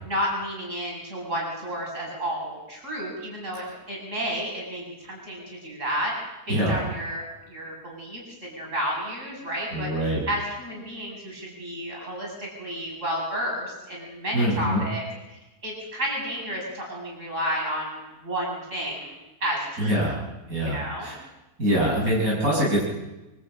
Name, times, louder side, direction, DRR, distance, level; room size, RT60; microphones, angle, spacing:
voice 1, 0.0-6.1 6.5-9.9 10.3-19.2 19.4-19.9 20.6-21.1, equal, 60° right, -1 dB, 8.1 m, -31 dB
voice 2, 6.5-6.8 9.7-10.2 14.3-14.8 19.8-20.2 20.5-21.2 21.6-22.8, equal, 85° right, -5 dB, 7.0 m, -24 dB
25.5 x 13.5 x 8.9 m, 1.0 s
omnidirectional pair, 1.5 m